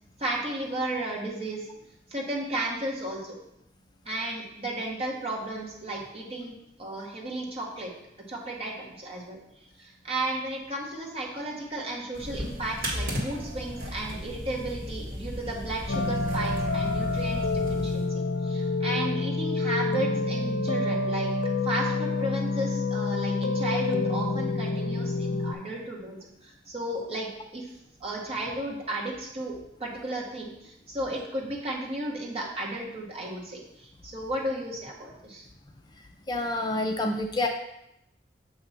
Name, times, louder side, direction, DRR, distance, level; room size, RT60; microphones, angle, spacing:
voice 1, 0.2-1.7 2.1-3.4 4.0-7.9 8.3-9.4 9.8-21.3 21.6-27.6 28.0-35.5, right 1 dB, 35° right, -2 dB, 1.3 m, -34 dB
sound 1, 12.1-18.0, equal, 55° right, 1.7 m, -35 dB
sound 2, 15.9-25.5, left 3 dB, 80° left, 0.5 m, -28 dB
voice 2, 36.3-37.5, left 2 dB, 25° left, 3 dB, 0.4 m, -27 dB
7.0 x 2.9 x 5.6 m, 0.81 s
head